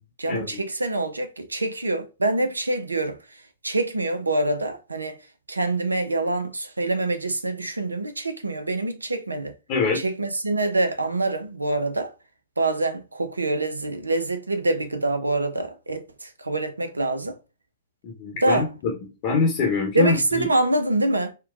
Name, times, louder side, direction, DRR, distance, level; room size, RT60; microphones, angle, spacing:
voice 1, 0.2-5.2 5.5-9.5 9.9-12.1 12.6-17.4 18.4-18.7 19.9-21.3, right 2 dB, 85° right, 0.6 m, -25 dB
voice 2, 9.7-10.0 18.0-18.9 19.2-20.4, left 4 dB, 40° left, 0.9 m, -24 dB
4.4 x 2.2 x 2.4 m
figure-of-eight pair, 115°, 0 cm